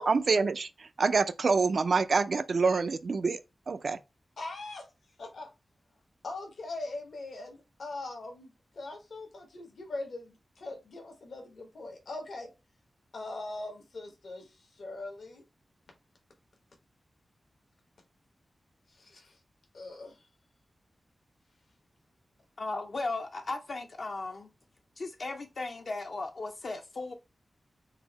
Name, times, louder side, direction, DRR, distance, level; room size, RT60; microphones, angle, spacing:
voice 1, 0.0-3.4 3.7-4.0, right 4 dB, 65° right, 0.3 m, -26 dB
voice 2, 4.4-4.8 5.2-5.5 6.2-12.5 13.1-15.4 19.0-19.4 19.7-20.2, left 2 dB, 80° left, 1.1 m, -41 dB
voice 3, 22.6-24.5 25.0-27.1, left 3 dB, 65° left, 0.5 m, -36 dB
3.8 x 2.0 x 3.9 m
cardioid pair, 60°, 0 cm